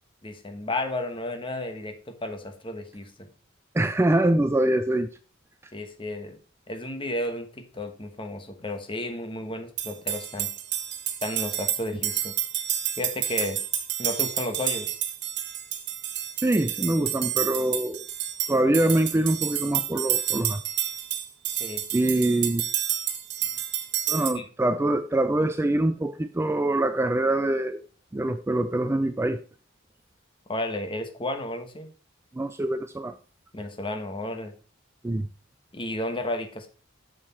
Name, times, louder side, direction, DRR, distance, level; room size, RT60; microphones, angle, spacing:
voice 1, 0.2-3.3 5.7-6.4 6.7-10.5 11.2-12.4 13.0-13.6 14.0-14.9 21.6-21.8 24.3-24.4 30.5-31.9 33.5-34.5 35.7-36.7, left 1 dB, 25° left, 6 dB, 1.2 m, -33 dB
voice 2, 3.7-5.1 16.4-18.1 18.5-20.6 21.9-22.7 24.1-27.8 28.1-29.4 32.3-33.1 35.0-35.3, right 1 dB, 10° right, 10 dB, 0.3 m, -24 dB
sound 1, 9.8-24.3, right 11 dB, 60° right, 1.1 m, -30 dB
7.5 x 6.5 x 4.3 m, 0.37 s
head